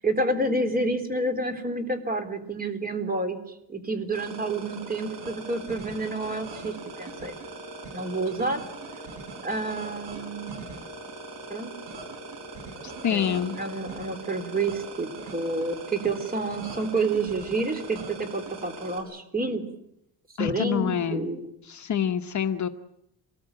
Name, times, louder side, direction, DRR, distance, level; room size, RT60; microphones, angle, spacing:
voice 1, 0.0-3.4 3.7-7.3 7.9-8.6 9.4-10.6 11.5-11.7 13.1-19.6 20.4-21.5, right 2 dB, 20° right, 7 dB, 3.5 m, -29 dB
sound 1, 4.1-19.0, right 2 dB, 75° right, 7.3 m, -40 dB
voice 2, 13.0-13.6 20.4-21.2 21.7-22.7, left 8 dB, 45° left, 8 dB, 1.1 m, -26 dB
26.5 x 20.0 x 8.8 m, 0.79 s
cardioid pair, 145°, 42 cm